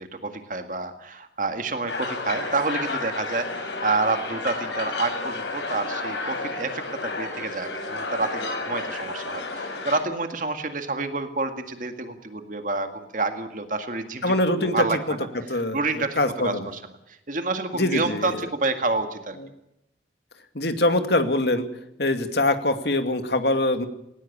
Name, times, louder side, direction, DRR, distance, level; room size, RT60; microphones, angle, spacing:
voice 1, 0.0-15.0 15.4-16.8 17.3-19.4, right 3 dB, 45° right, 7 dB, 1.9 m, -28 dB
sound 1, 1.9-10.0, left 3 dB, 85° left, 6.2 m, -31 dB
voice 2, 14.2-14.8 15.5-16.7 17.7-18.3 19.4-19.5 20.5-21.7 22.0-23.9, left 1 dB, 70° left, 7 dB, 2.4 m, -23 dB
19.5 x 18.5 x 7.3 m, 0.84 s
head